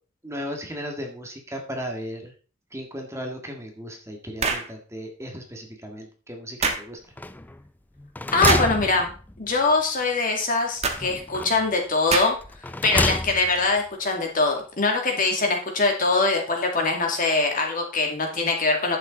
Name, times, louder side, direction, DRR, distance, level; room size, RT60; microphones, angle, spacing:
voice 1, 0.2-2.3 2.7-7.0, equal, 15° right, 2 dB, 1.7 m, -36 dB
sound 1, 4.4-4.7 6.6-6.9 8.5-8.7 10.8-11.0 12.1-12.5, right 4 dB, 35° right, 1.4 m, -24 dB
sound 2, 7.2-7.7 8.0-9.6 10.9-11.7 12.4-13.7, left 2 dB, 10° left, 0.4 m, -28 dB
voice 2, 8.3-9.1 9.4-12.4 12.8-19.0, left 3 dB, 45° left, 2 dB, 2.3 m, -23 dB
11.0 x 7.5 x 3.9 m, 0.39 s
head